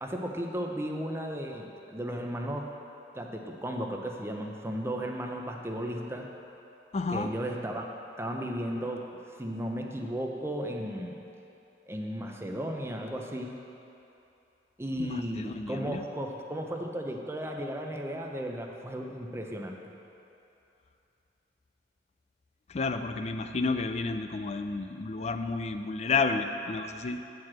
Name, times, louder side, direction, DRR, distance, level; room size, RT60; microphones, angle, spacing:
voice 1, 0.0-2.7 3.1-6.3 7.1-7.9 8.2-9.1 9.4-11.2 11.9-13.6 14.8-19.9, equal, 15° right, 1 dB, 0.6 m, -35 dB
voice 2, 6.9-7.3 15.0-16.0 22.7-27.2, left 4 dB, 40° left, 8 dB, 0.4 m, -31 dB
9.2 x 4.7 x 7.4 m, 2.8 s
head